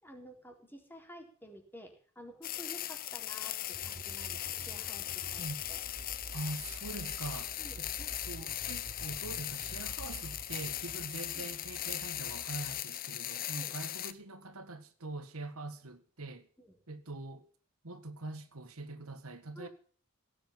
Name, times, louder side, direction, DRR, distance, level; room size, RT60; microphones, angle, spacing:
voice 1, 0.0-5.8 7.6-8.1 8.7-8.8 11.3-11.5 13.5-13.7 16.6-16.8 19.5-19.7, equal, 10° left, 4.0 m, -51 dB
sound 1, 2.4-14.1, left 13 dB, 45° left, 0.7 m, -39 dB
sound 2, 3.7-12.8, right 2 dB, 30° right, 0.7 m, -50 dB
voice 2, 6.3-7.9 8.3-16.5 16.9-17.5 17.8-19.7, right 2 dB, 85° right, 1.8 m, -43 dB
17.5 x 8.7 x 7.5 m
head